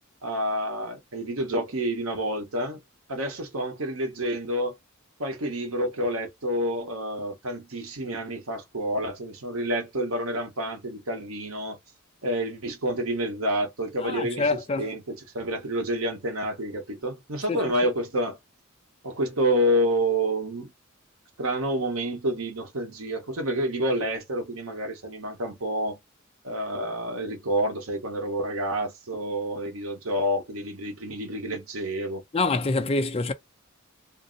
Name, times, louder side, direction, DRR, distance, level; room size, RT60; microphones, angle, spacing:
voice 1, 0.2-2.8 3.1-4.8 5.2-11.8 12.2-18.4 19.0-20.7 21.4-26.0 26.4-32.2, equal, 85° right, 1.0 m, -28 dB
voice 2, 14.0-14.9 32.3-33.3, left 3 dB, 30° left, 0.5 m, -26 dB
2.6 x 2.0 x 3.8 m
head